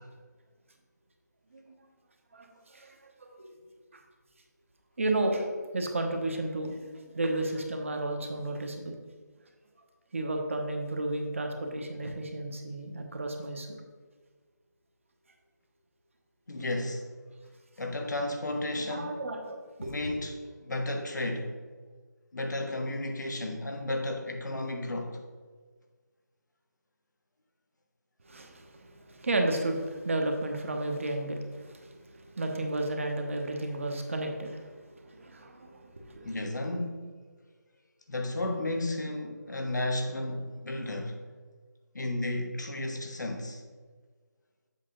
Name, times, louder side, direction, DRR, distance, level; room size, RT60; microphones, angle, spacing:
voice 1, 2.3-3.5 3.9-4.0 5.0-8.9 10.1-13.7 18.9-20.2 28.2-36.3, right 2 dB, 45° right, 1.0 m, -33 dB
voice 2, 16.5-17.1 17.8-19.2 19.8-21.6 22.3-25.2 36.2-37.1 38.1-41.2 41.9-43.6, left 1 dB, 75° left, 1.2 m, -33 dB
7.4 x 5.6 x 3.8 m
figure-of-eight pair, 170°, 10 cm